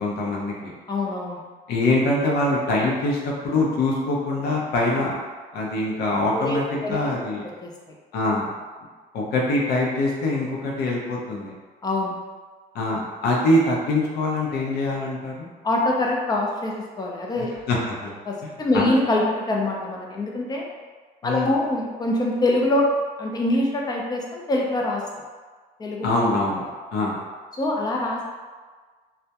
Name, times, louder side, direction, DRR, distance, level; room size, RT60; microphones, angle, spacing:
voice 1, 0.0-0.7 1.7-5.2 5.5-7.4 8.1-8.5 9.1-11.5 12.7-15.5 17.7-18.1 18.4-18.9 21.2-21.6 26.0-26.6 26.9-27.2, left 2 dB, 70° left, -3 dB, 0.6 m, -24 dB
voice 2, 0.9-1.4 6.3-7.0 7.6-7.7 11.8-12.2 15.6-17.5 18.3-20.6 21.2-22.9 23.2-25.0 25.8-26.1 27.6-28.2, left 2 dB, 25° left, -1 dB, 0.4 m, -24 dB
2.2 x 2.1 x 2.7 m, 1.4 s
cardioid pair, 110°, 17 cm